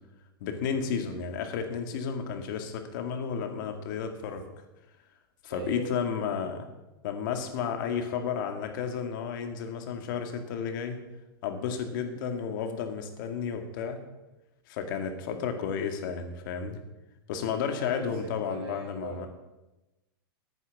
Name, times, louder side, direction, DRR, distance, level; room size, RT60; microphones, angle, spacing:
voice 1, 0.4-4.5 5.4-6.6 7.0-11.0 11.4-14.0 14.7-16.8 17.3-19.3, left 6 dB, 55° left, 6 dB, 2.1 m, -32 dB
voice 2, 5.5-6.1 11.8-12.2 17.7-19.3, right 5 dB, 80° right, 2 dB, 4.4 m, -42 dB
10.0 x 9.3 x 7.2 m, 1.0 s
hypercardioid pair, 140°, 13 cm